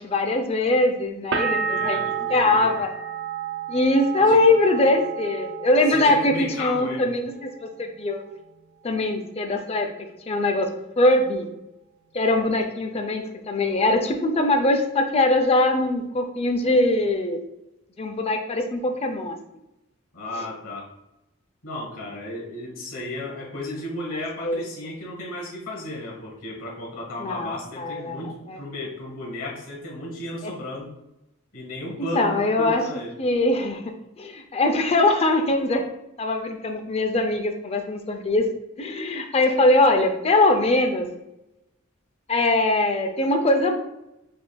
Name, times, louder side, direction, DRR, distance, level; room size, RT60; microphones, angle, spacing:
voice 1, 0.0-2.0 2.3-2.9 3.7-6.3 6.6-8.2 8.8-9.9 10.3-10.7 11.0-11.5 12.1-17.4 18.0-19.4 24.4-24.6 27.2-28.2 28.5-28.6 30.4-30.5 32.2-32.8 33.2-33.8 34.2-35.8 36.2-38.4 38.8-41.1 42.3-43.8, left 2 dB, 30° left, 5 dB, 0.4 m, -22 dB
sound 1, 1.3-6.9 7.2-8.0, right 7 dB, 55° right, 0.4 m, -30 dB
voice 2, 1.6-2.8 4.2-4.4 5.9-7.1 20.1-20.9 21.6-30.9 31.5-33.1, left 1 dB, 70° left, -1 dB, 1.1 m, -34 dB
5.3 x 2.4 x 2.2 m, 0.89 s
head